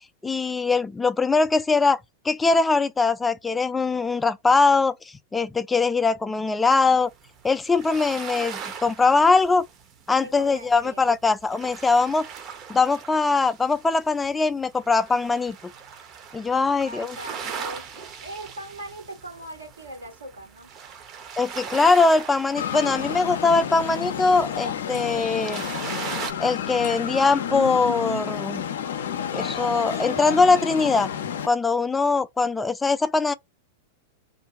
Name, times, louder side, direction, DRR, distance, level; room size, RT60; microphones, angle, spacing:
voice 1, 0.2-2.0 2.2-7.1 7.4-9.7 10.1-12.3 12.7-15.6 16.3-17.2 21.4-25.6 26.4-28.6 29.3-31.1 31.4-33.3, left 4 dB, 15° left, 0.3 m, -21 dB
sound 1, 7.2-14.3 14.7-26.3, right 7 dB, 35° right, 0.7 m, -39 dB
voice 2, 10.2-11.1 16.7-20.7 22.7-23.1, right 1 dB, 90° right, 1.3 m, -40 dB
sound 2, 22.6-31.5, left 8 dB, 70° left, 0.5 m, -30 dB
2.6 x 2.2 x 4.0 m
hypercardioid pair, 100°, 0 cm